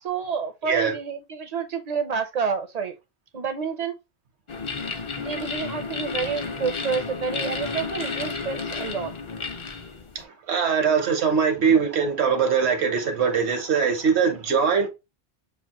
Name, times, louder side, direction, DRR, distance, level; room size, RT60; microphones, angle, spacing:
voice 1, 0.0-3.0 3.3-3.9 5.2-9.1, right 6 dB, 50° right, 0.5 m, -29 dB
voice 2, 0.6-0.9 10.1-14.9, right 6 dB, 85° right, 1.3 m, -22 dB
sound 1, 4.5-10.2, left 4 dB, 40° left, 0.5 m, -32 dB
6.9 x 2.4 x 2.9 m
omnidirectional pair, 1.1 m